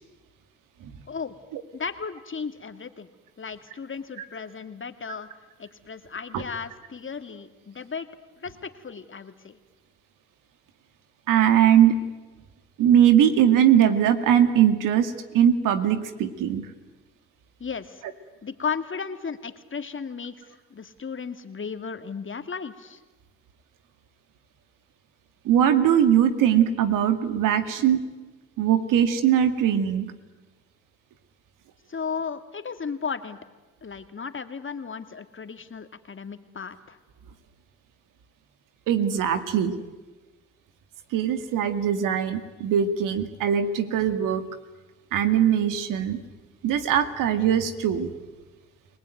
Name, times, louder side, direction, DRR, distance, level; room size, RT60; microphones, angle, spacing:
voice 1, 1.7-3.1 3.4-5.3 5.6-8.1 8.4-9.6 17.6-18.0 18.4-23.0 31.9-33.4 33.8-37.0, left 6 dB, 40° left, 9 dB, 2.3 m, -35 dB
voice 2, 11.3-12.0 12.8-16.7 25.5-28.0 28.6-30.1 38.9-39.8 41.1-44.4 45.1-46.2 46.6-48.1, right 9 dB, 80° right, 9 dB, 2.1 m, -21 dB
30.0 x 19.0 x 9.3 m, 1.2 s
supercardioid pair, 55°, 32 cm